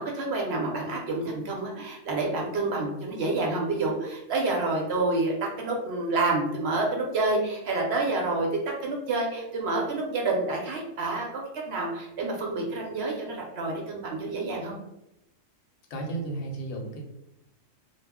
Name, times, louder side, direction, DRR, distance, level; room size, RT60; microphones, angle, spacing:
voice 1, 0.0-8.5 8.8-11.4 11.7-14.8, right 2 dB, 60° right, -1 dB, 0.7 m, -28 dB
voice 2, 15.9-17.0, right 2 dB, 65° left, 0 dB, 0.9 m, -33 dB
2.3 x 2.0 x 3.4 m, 0.86 s
omnidirectional pair, 1.4 m